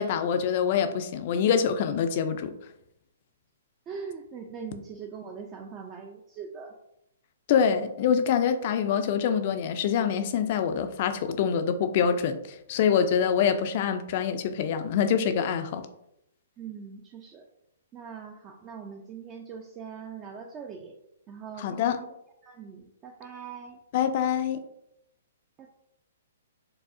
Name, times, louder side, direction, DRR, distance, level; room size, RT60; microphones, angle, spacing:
voice 1, 0.0-2.5 7.5-12.4 12.7-15.8 21.6-22.0 23.9-24.6, left 7 dB, 45° left, 9 dB, 0.4 m, -25 dB
voice 2, 3.9-6.8 16.6-17.5 17.9-20.9 21.3-22.1 22.4-23.8 25.6-25.7, right 6 dB, 25° right, 2 dB, 0.3 m, -41 dB
4.6 x 2.0 x 2.6 m, 0.80 s
hypercardioid pair, 140°, 0 cm